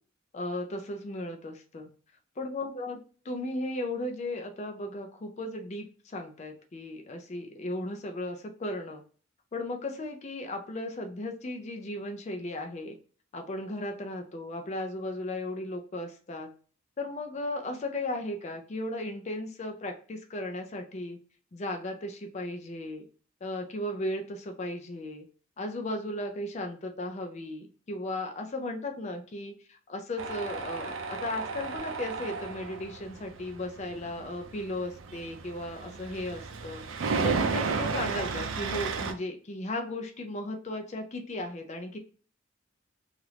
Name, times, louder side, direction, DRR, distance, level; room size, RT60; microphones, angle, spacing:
voice 1, 0.3-1.9 2.4-3.0 3.2-9.0 9.5-13.0 13.3-16.5 17.0-21.2 21.5-23.1 23.4-25.2 25.6-36.8 37.2-42.0, left 1 dB, 35° left, 4 dB, 0.4 m, -36 dB
Tools, 30.2-39.1, right 4 dB, 75° right, 0.4 m, -34 dB
2.9 x 2.4 x 3.2 m, 0.41 s
head